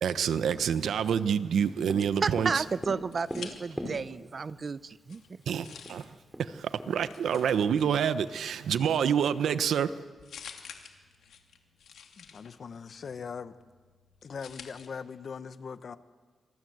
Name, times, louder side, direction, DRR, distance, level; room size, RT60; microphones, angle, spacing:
voice 1, 0.0-2.6 5.5-6.1 6.4-9.9, right 8 dB, 80° right, 1.1 m, -27 dB
Tap, 1.9-4.5 5.5-5.6 5.9-6.0 6.3-7.7, equal, 5° right, 5.0 m, -40 dB
voice 2, 2.2-5.4, right 5 dB, 45° right, 0.8 m, -32 dB
sound 1, 2.7-4.1 4.5-14.9, left 7 dB, 85° left, 2.8 m, -51 dB
voice 3, 12.2-13.5 14.2-16.0, left 6 dB, 55° left, 1.3 m, -40 dB
26.5 x 26.5 x 8.1 m
cardioid pair, 105°, 0 cm